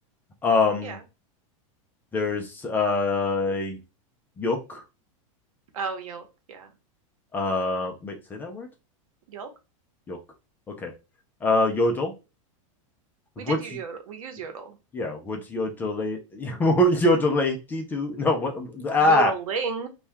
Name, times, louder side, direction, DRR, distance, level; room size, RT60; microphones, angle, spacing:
voice 1, 0.4-1.0 2.1-3.8 4.4-4.8 7.3-8.7 10.1-10.2 10.8-10.9 11.4-12.1 13.4-13.6 14.9-19.3, left 2 dB, 10° left, 2 dB, 0.4 m, -24 dB
voice 2, 5.7-6.7 9.3-9.5 13.4-14.8 19.0-19.9, right 5 dB, 90° right, 6 dB, 0.9 m, -33 dB
2.7 x 2.3 x 3.3 m, 0.28 s
supercardioid pair, 160°, 17 cm